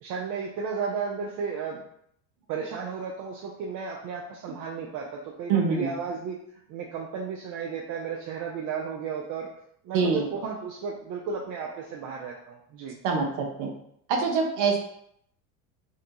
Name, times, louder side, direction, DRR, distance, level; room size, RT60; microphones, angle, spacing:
voice 1, 0.0-1.8 2.5-6.4 6.7-9.5 9.8-13.0, right 5 dB, 45° right, -2 dB, 0.5 m, -34 dB
voice 2, 5.5-5.9 9.9-10.3 13.0-13.7 14.1-14.8, right 5 dB, 70° right, 1 dB, 0.8 m, -24 dB
2.6 x 2.2 x 2.6 m, 0.71 s
supercardioid pair, 95°, 41 cm